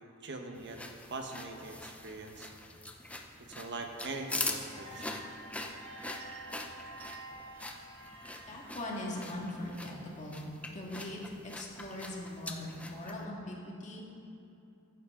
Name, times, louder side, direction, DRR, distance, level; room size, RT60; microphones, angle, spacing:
voice 1, 0.2-0.8 1.1-2.5 3.4-5.2, right 3 dB, 60° right, 3 dB, 1.2 m, -42 dB
sound 1, 0.5-13.2, left 2 dB, 5° left, 0.7 m, -43 dB
sound 2, 4.7-9.7, right 2 dB, 75° right, 1.8 m, -49 dB
voice 2, 8.5-14.0, left 1 dB, 35° left, -2 dB, 2.0 m, -41 dB
14.5 x 10.5 x 3.8 m, 2.7 s
head